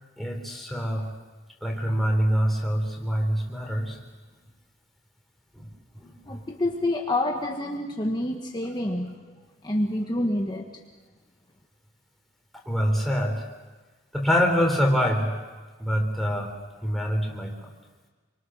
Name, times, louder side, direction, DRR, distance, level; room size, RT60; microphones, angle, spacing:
voice 1, 0.2-1.2 1.6-4.0 5.6-5.7 6.0-6.4 12.7-13.5 14.1-15.4 15.8-16.5 16.8-17.7, equal, ahead, 0 dB, 4.1 m, -25 dB
voice 2, 6.3-9.2 9.6-10.7, left 1 dB, 20° left, 1 dB, 1.5 m, -27 dB
28.0 x 24.5 x 6.5 m, 1.3 s
head